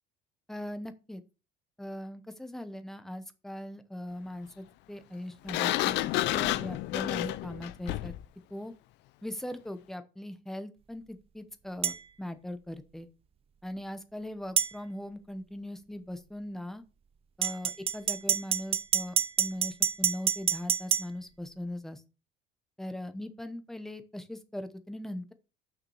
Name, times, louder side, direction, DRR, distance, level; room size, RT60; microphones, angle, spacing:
voice 1, 0.5-1.2 1.8-6.0 6.3-8.1 8.5-8.7 9.2-13.1 13.6-16.8 17.4-22.0 22.8-25.3, left 1 dB, ahead, 10 dB, 0.8 m, -40 dB
Sliding door, 5.5-8.2, left 16 dB, 65° left, 0.5 m, -30 dB
sound 1, 11.8-12.0 14.6-14.7 17.4-21.1, right 9 dB, 30° right, 0.6 m, -27 dB
6.6 x 6.2 x 6.2 m, 0.32 s
cardioid pair, 160°, 20 cm